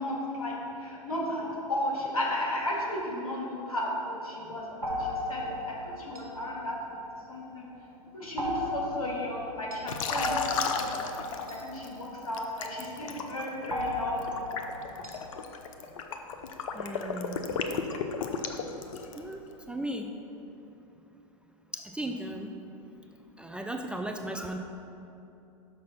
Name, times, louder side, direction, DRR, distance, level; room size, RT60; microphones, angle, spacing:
voice 1, 0.0-6.7 7.3-7.7 8.1-14.2, left 1 dB, 80° left, -3 dB, 1.9 m, -34 dB
sound 1, 4.8-7.6 8.4-12.9 13.7-15.5, left 2 dB, 85° right, 1.2 m, -35 dB
Liquid, 9.9-11.9 12.3-19.3, left 6 dB, 65° left, 0.7 m, -34 dB
voice 2, 16.7-17.5 19.1-19.4 19.7-20.1 21.7-22.5 23.4-24.6, right 1 dB, 5° right, 3 dB, 0.4 m, -36 dB
6.1 x 6.0 x 5.8 m, 2.9 s
hypercardioid pair, 100°, 18 cm